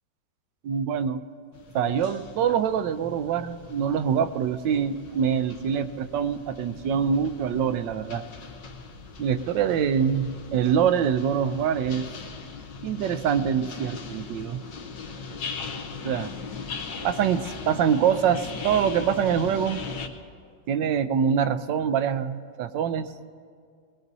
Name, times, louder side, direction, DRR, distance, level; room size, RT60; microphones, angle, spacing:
voice 1, 0.6-1.2 1.7-8.2 9.2-12.1 12.8-14.6 16.0-16.3 17.0-19.8 20.7-23.1, right 8 dB, 85° right, 11 dB, 1.3 m, -25 dB
sound 1, 1.5-20.1, left 5 dB, 85° left, 1.6 m, -39 dB
21.0 x 20.0 x 2.7 m, 2.1 s
omnidirectional pair, 1.9 m